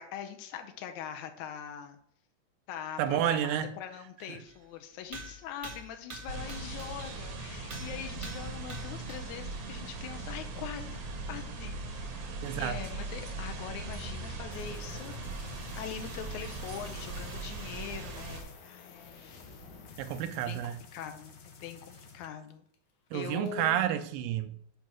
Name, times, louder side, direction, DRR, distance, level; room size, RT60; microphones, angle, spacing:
voice 1, 0.0-2.0 2.7-11.0 11.3-15.2 15.8-19.2 20.4-20.6 20.9-22.6 23.1-23.8, left 8 dB, 80° left, 1.7 m, -42 dB
voice 2, 3.0-3.7 12.4-12.8 20.0-20.8 23.1-24.6, right 11 dB, 80° right, 2.2 m, -30 dB
sound 1, 4.5-4.6 5.1-7.3 7.7-9.4 9.9-10.0 10.8-10.9, right 1 dB, 35° right, 1.1 m, -46 dB
sound 2, 6.3-18.4, right 3 dB, 60° right, 1.7 m, -39 dB
sound 3, 14.5-22.7 23.1-23.5, left 4 dB, 65° left, 1.6 m, -51 dB
8.1 x 2.8 x 6.0 m
omnidirectional pair, 4.1 m